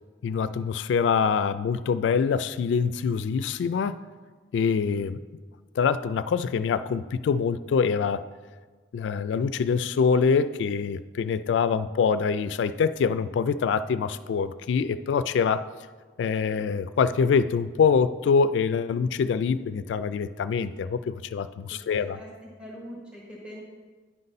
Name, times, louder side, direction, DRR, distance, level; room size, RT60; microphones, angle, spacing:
voice 1, 0.2-4.0 4.5-5.2 5.8-8.2 8.9-15.6 16.2-22.2, left 6 dB, 85° left, 14 dB, 0.3 m, -25 dB
voice 2, 21.7-23.6, equal, 5° right, -4 dB, 1.2 m, -43 dB
9.9 x 4.0 x 5.4 m, 1.4 s
head